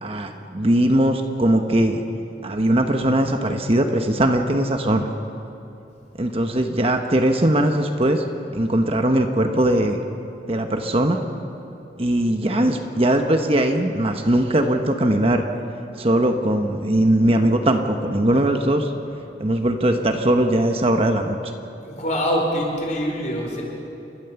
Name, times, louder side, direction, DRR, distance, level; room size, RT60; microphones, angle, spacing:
voice 1, 0.0-2.0 2.4-5.1 6.2-8.2 8.5-10.0 10.5-11.2 12.0-15.4 16.0-18.9 19.4-21.5, right 1 dB, 35° right, 5 dB, 1.0 m, -20 dB
voice 2, 21.8-23.6, equal, 45° left, -1 dB, 4.9 m, -24 dB
29.5 x 13.0 x 7.0 m, 2.8 s
head